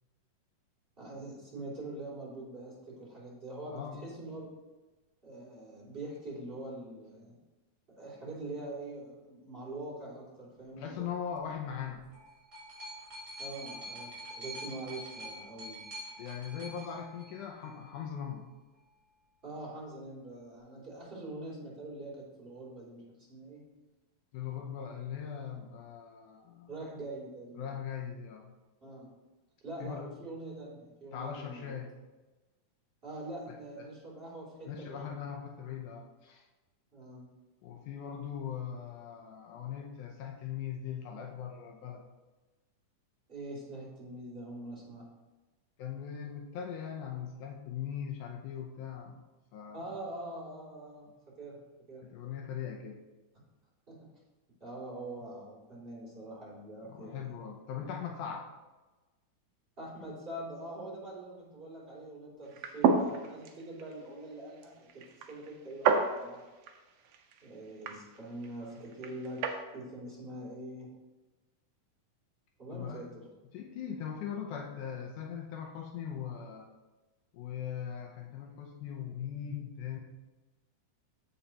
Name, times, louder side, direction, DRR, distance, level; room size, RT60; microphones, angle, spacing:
voice 1, 1.0-4.5 5.2-7.3 7.9-11.1 13.4-15.8 19.4-23.0 23.3-23.6 26.7-27.7 28.8-29.1 29.6-31.8 33.0-35.2 36.9-37.3 43.3-45.1 49.7-51.6 51.9-52.0 53.9-54.1 54.6-57.3 59.8-66.4 67.4-69.4 69.7-70.9 72.6-73.3, right 1 dB, 15° right, -6 dB, 2.9 m, -44 dB
voice 2, 3.7-4.0 10.8-12.1 16.2-18.5 24.3-26.7 27.6-28.5 29.8-30.1 31.1-31.9 33.5-33.9 34.7-36.5 37.6-42.0 45.8-49.2 49.5-49.9 52.1-53.0 56.9-58.5 72.7-73.1 73.5-76.7 77.3-80.0, left 8 dB, 75° left, 2 dB, 2.1 m, -40 dB
sound 1, 11.9-17.8 18.7-18.8, equal, 35° right, 3.7 m, -45 dB
sound 2, 62.5-69.6, right 5 dB, 90° right, 1.3 m, -33 dB
14.5 x 5.5 x 2.9 m, 1.2 s
omnidirectional pair, 3.8 m